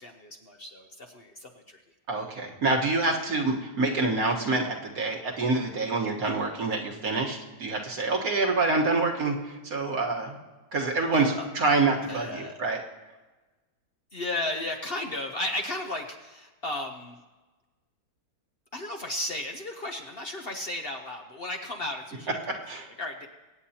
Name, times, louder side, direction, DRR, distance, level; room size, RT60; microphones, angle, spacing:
voice 1, 0.0-1.8 11.1-11.5 12.1-12.6 14.1-17.2 18.7-22.4 23.0-23.3, left 2 dB, 45° left, 3 dB, 0.9 m, -34 dB
voice 2, 2.1-10.4 10.7-12.8 22.5-22.9, right 3 dB, 65° right, 0 dB, 1.9 m, -27 dB
24.0 x 9.1 x 2.9 m, 1.2 s
omnidirectional pair, 1.7 m